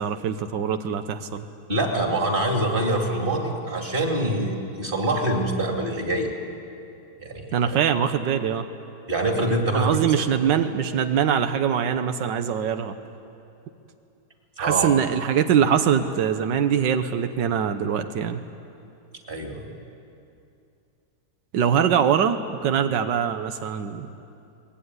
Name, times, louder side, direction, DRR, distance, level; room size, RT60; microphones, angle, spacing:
voice 1, 0.0-1.5 7.5-8.7 9.7-12.9 14.6-18.4 21.5-24.1, right 8 dB, 90° right, 8 dB, 1.6 m, -23 dB
voice 2, 1.7-6.3 7.2-7.8 9.1-10.2 14.6-14.9 19.3-19.6, right 1 dB, 30° right, 1 dB, 2.8 m, -25 dB
24.0 x 20.0 x 9.6 m, 2.6 s
omnidirectional pair, 1.9 m